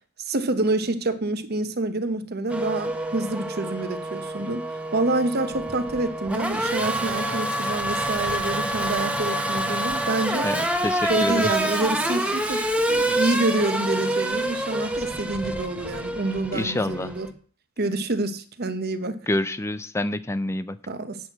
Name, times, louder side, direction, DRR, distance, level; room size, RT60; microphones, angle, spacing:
voice 1, 0.2-10.5 11.1-17.3 17.8-19.2 20.9-21.2, right 2 dB, 50° right, 1.0 m, -27 dB
Race car auto racing / Accelerating revving vroom, 2.5-17.3, right 1 dB, 5° right, 1.1 m, -27 dB
voice 2, 10.4-11.5 16.5-17.2 19.3-20.8, left 1 dB, 15° left, 0.4 m, -27 dB
8.5 x 6.4 x 7.4 m
head